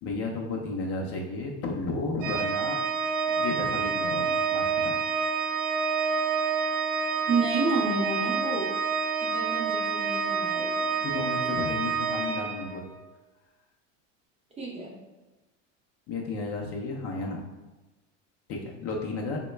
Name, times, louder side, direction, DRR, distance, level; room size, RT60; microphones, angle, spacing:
voice 1, 0.0-2.8 3.3-4.9 11.0-12.8 16.1-17.4 18.5-19.4, left 3 dB, 40° left, 0 dB, 0.5 m, -33 dB
Organ, 2.2-13.1, right 5 dB, 85° right, 0.6 m, -28 dB
voice 2, 7.3-8.7 9.2-10.9 14.6-14.9, right 3 dB, 15° right, -4 dB, 0.5 m, -30 dB
3.0 x 2.1 x 3.1 m, 1.1 s
supercardioid pair, 125°, 38 cm